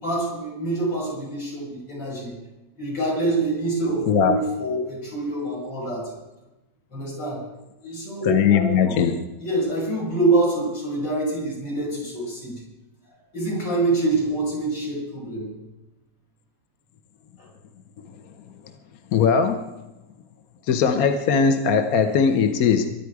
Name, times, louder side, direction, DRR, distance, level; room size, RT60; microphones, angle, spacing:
voice 1, 0.0-2.3 2.8-6.1 6.9-7.4 7.8-9.0 9.4-12.6 13.3-15.5, right 2 dB, 80° left, -3 dB, 6.8 m, -26 dB
voice 2, 8.3-9.2 19.1-19.7 20.7-22.9, left 6 dB, 60° left, 7 dB, 1.3 m, -19 dB
22.0 x 10.0 x 4.8 m, 1.0 s
omnidirectional pair, 1.9 m